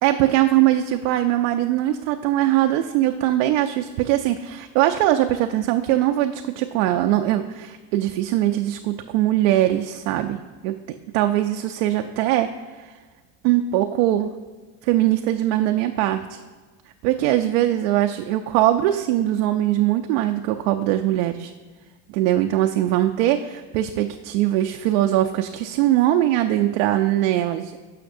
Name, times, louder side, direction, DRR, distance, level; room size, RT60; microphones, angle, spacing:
voice 1, 0.0-10.7 11.1-12.5 12.8-12.9 13.4-14.3 14.8-16.4 17.0-21.5 22.1-27.7, right 13 dB, 70° right, 5 dB, 0.5 m, -21 dB
12.5 x 5.8 x 2.6 m, 1.4 s
supercardioid pair, 130°, 42 cm